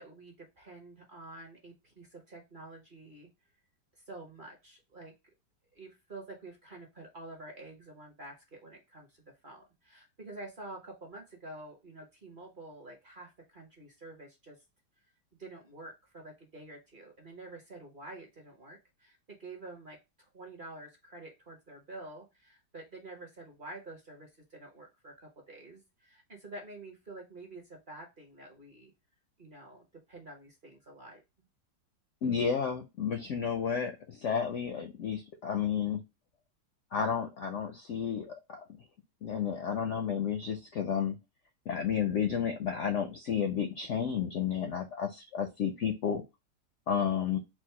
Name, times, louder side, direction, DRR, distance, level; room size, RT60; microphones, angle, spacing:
voice 1, 0.0-3.3 4.1-5.1 5.7-14.6 15.4-28.9 29.4-31.2, right 2 dB, 35° right, 1 dB, 0.9 m, -48 dB
voice 2, 32.2-36.0 36.9-38.6 39.2-41.2 41.7-46.2 46.9-47.4, left 7 dB, 70° left, 6 dB, 0.7 m, -31 dB
4.6 x 2.1 x 4.2 m, 0.24 s
omnidirectional pair, 1.9 m